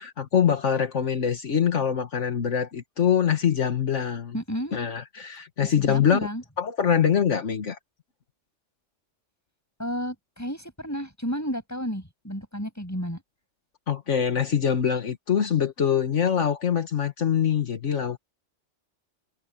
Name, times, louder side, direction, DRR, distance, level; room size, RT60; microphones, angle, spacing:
voice 1, 0.0-4.3 4.7-6.2 6.6-7.8 13.9-18.2, left 8 dB, 75° left, 1.7 m, -24 dB
voice 2, 4.3-4.7 5.8-6.4 9.8-13.2, equal, 15° left, 7.7 m, -32 dB
omnidirectional pair, 1.3 m